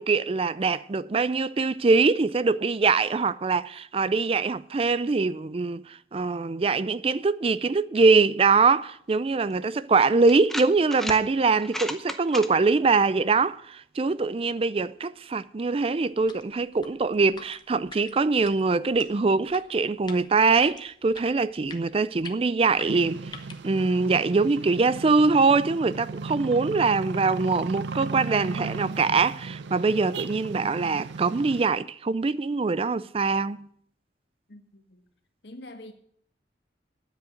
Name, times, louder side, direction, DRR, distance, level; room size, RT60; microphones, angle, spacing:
voice 1, 0.0-23.3 23.6-33.7, right 4 dB, 30° right, 0.4 m, -23 dB
sound 1, 9.5-9.6 10.3-11.2 11.6-12.5, left 1 dB, ahead, 0.7 m, -33 dB
sound 2, 16.1-23.7, left 4 dB, 25° left, 1.0 m, -47 dB
sound 3, 22.9-31.6, right 4 dB, 85° right, 0.5 m, -36 dB
voice 2, 34.5-35.1 35.4-35.9, left 1 dB, 75° left, 1.5 m, -45 dB
9.6 x 7.9 x 9.1 m
head